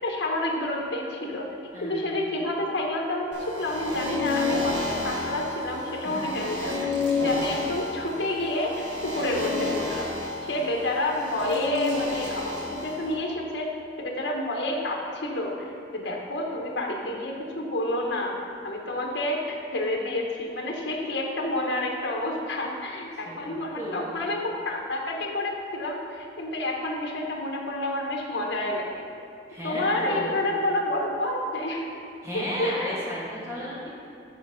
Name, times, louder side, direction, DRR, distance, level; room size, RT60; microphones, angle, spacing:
voice 1, 0.0-1.5 1.8-6.9 7.2-10.1 10.4-13.7 14.0-18.4 18.6-29.0 29.6-31.9 32.3-32.9, left 1 dB, 75° left, 0 dB, 1.2 m, -29 dB
voice 2, 1.7-2.1 6.0-6.3 6.7-6.8 23.3-24.2 29.5-30.4 32.2-33.9, equal, 15° right, -6 dB, 1.7 m, -34 dB
sound 1, 3.3-13.1, left 3 dB, 75° right, 1.4 m, -30 dB
8.2 x 4.6 x 5.7 m, 2.6 s
head